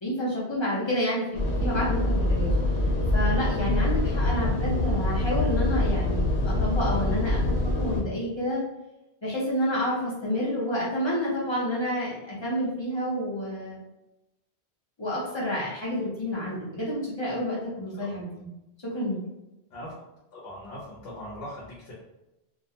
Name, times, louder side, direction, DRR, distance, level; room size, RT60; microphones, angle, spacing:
voice 1, 0.0-2.5 3.1-8.6 9.2-13.8 15.0-18.5 18.8-19.2, equal, 30° left, -7 dB, 0.6 m, -29 dB
sound 1, 1.3-8.0, left 2 dB, 90° left, 0.9 m, -25 dB
voice 2, 20.3-21.9, left 1 dB, 65° left, -6 dB, 0.9 m, -40 dB
2.3 x 2.1 x 2.7 m, 0.95 s
omnidirectional pair, 1.1 m